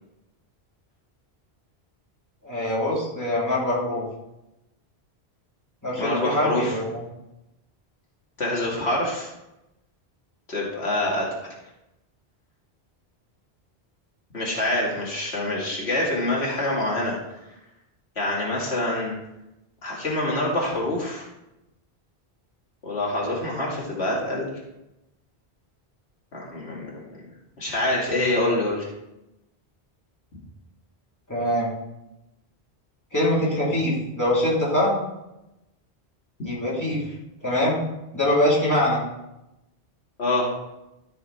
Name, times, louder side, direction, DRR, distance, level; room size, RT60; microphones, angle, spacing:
voice 1, 2.4-4.0 5.8-7.0 31.3-31.7 33.1-35.0 36.4-37.0 37.4-37.8 38.1-39.0, left 1 dB, 15° left, -7 dB, 3.4 m, -23 dB
voice 2, 6.0-6.7 8.4-9.3 10.5-11.5 14.3-17.2 18.2-19.1 19.8-21.3 22.8-24.5 26.3-27.0 27.6-28.9 40.2-40.5, left 1 dB, 75° left, -4 dB, 2.4 m, -26 dB
13.5 x 5.8 x 4.2 m, 0.92 s
omnidirectional pair, 1.1 m